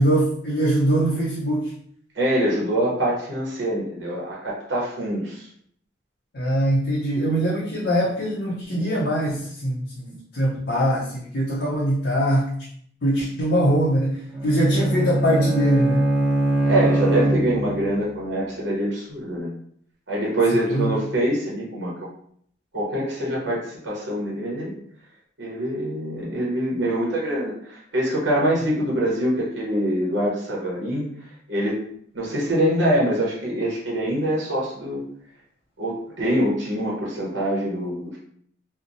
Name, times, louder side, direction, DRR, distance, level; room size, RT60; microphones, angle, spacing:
voice 1, 0.0-1.7 6.3-12.5 13.0-16.0 20.7-21.0, equal, 60° left, -6 dB, 0.5 m, -22 dB
voice 2, 2.1-5.5 16.7-19.5 20.1-21.9 22.7-24.7 25.4-31.0 31.5-31.8 32.1-35.0 35.8-38.2, right 1 dB, 75° right, -4 dB, 0.8 m, -24 dB
Bowed string instrument, 14.3-17.9, right 1 dB, 5° right, 0.5 m, -22 dB
2.8 x 2.0 x 2.5 m, 0.64 s
head